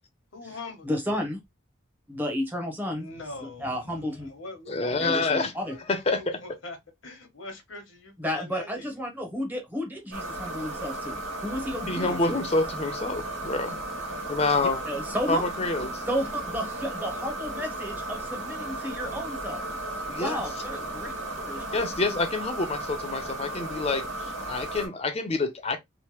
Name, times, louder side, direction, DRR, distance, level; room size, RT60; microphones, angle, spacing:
voice 1, 0.3-0.9 2.9-5.4 5.6-5.8 6.1-6.8 7.0-9.0, left 2 dB, 75° left, 1.0 m, -42 dB
voice 2, 0.9-1.4 2.1-3.1 3.6-4.3 5.0-5.7 8.2-11.2 11.4-12.4 14.9-15.4 16.1-19.6 20.1-21.6, equal, 10° right, 0.8 m, -32 dB
voice 3, 4.7-5.5 5.9-6.4 11.9-13.8 14.2-14.8 15.3-16.0 20.0-20.4 21.7-25.8, left 3 dB, 30° left, 0.5 m, -27 dB
sound 1, 10.1-24.9, right 2 dB, 90° right, 1.4 m, -35 dB
3.0 x 2.1 x 3.0 m
head